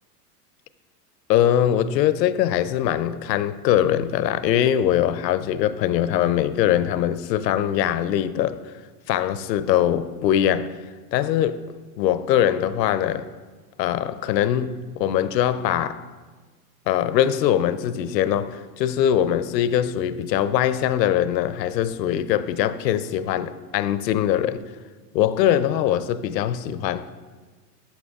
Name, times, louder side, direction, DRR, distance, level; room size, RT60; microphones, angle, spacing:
voice 1, 1.3-8.6 9.1-10.7 11.1-11.6 12.0-13.3 13.8-16.0 16.9-24.6 25.1-27.1, left 11 dB, 85° left, 0.5 m, -22 dB
11.5 x 5.8 x 2.4 m
hypercardioid pair, 105°, 49 cm